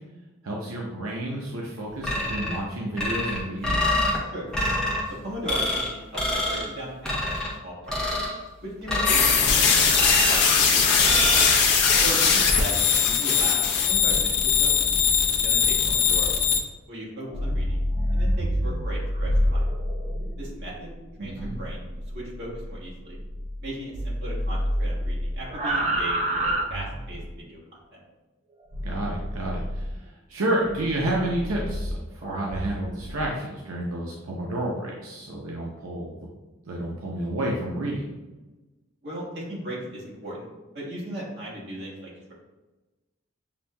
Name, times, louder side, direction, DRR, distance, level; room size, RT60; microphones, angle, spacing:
voice 1, 0.4-3.8 21.2-21.5 28.8-29.9 30.3-36.2 36.7-38.1, right 1 dB, 90° right, -2 dB, 0.6 m, -30 dB
sound 1, 2.0-2.6 3.0-4.2 4.5-5.0 5.5-5.9 6.1-6.7 7.0-7.5 7.9-8.3 8.9-9.4 10.0-10.5 11.0-11.5, left 1 dB, 5° left, 0.7 m, -26 dB
voice 2, 5.2-8.0 8.6-11.3 12.0-14.8 15.4-16.3 16.9-17.8 18.1-19.6 20.4-20.9 21.2-21.9 22.1-23.2 23.6-27.6 27.9-28.0 39.0-40.5 40.7-42.3, right 1 dB, 50° right, -6 dB, 1.4 m, -37 dB
sound 2, 9.0-16.6, left 6 dB, 55° left, 0.6 m, -20 dB
sound 3, 17.2-23.7 23.9-27.3 28.7-30.0 30.6-33.3, equal, 30° right, 0.4 m, -28 dB
6.7 x 2.6 x 2.2 m, 1.1 s
head